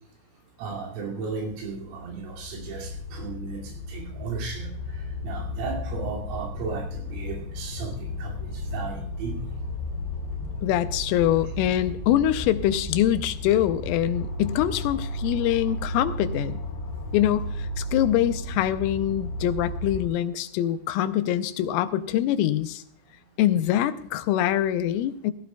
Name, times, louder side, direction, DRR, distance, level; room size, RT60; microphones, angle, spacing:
voice 1, 0.6-9.5, right 5 dB, 80° right, -1 dB, 5.1 m, -35 dB
sound 1, 1.3-20.1, left 1 dB, 60° left, 4.9 m, -34 dB
voice 2, 10.6-16.6 17.1-22.8 23.4-25.3, left 12 dB, 90° left, 11 dB, 3.3 m, -24 dB
17.0 x 15.0 x 2.3 m, 0.65 s
omnidirectional pair, 5.7 m